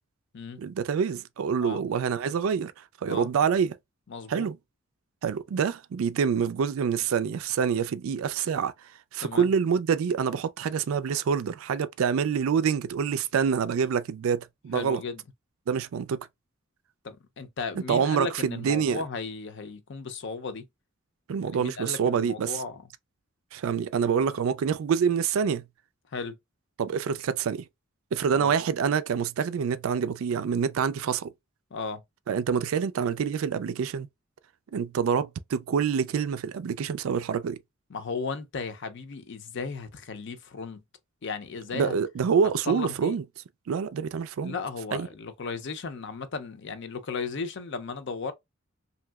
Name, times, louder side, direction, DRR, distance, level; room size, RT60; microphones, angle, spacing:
voice 1, 0.6-2.7 3.0-3.8 4.3-4.6 5.2-8.7 9.1-15.0 15.7-16.2 17.9-19.0 21.3-22.6 23.5-25.6 26.8-27.6 28.1-31.3 32.3-34.1 34.7-37.6 41.7-43.2 43.7-44.5 44.9-45.1, right 6 dB, 85° right, 0.4 m, -26 dB
voice 2, 4.1-4.5 9.2-9.5 14.7-15.2 17.0-20.7 21.4-22.8 26.1-26.4 28.3-28.5 31.7-32.0 37.9-40.8 41.2-42.0 42.7-43.2 44.4-48.3, left 4 dB, 60° left, 0.5 m, -35 dB
3.0 x 2.7 x 2.3 m
head